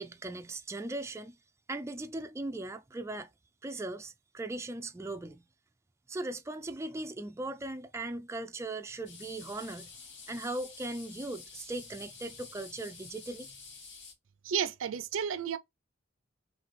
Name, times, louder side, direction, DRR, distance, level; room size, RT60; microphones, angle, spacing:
voice 1, 0.0-1.4 1.7-3.3 3.6-5.4 6.1-9.9 10.3-13.5, right 2 dB, 15° right, 0.3 m, -38 dB
sound 1, 9.1-14.1, left 4 dB, 65° left, 2.1 m, -49 dB
voice 2, 14.4-15.6, right 7 dB, 75° right, 0.5 m, -32 dB
3.9 x 3.4 x 3.2 m
head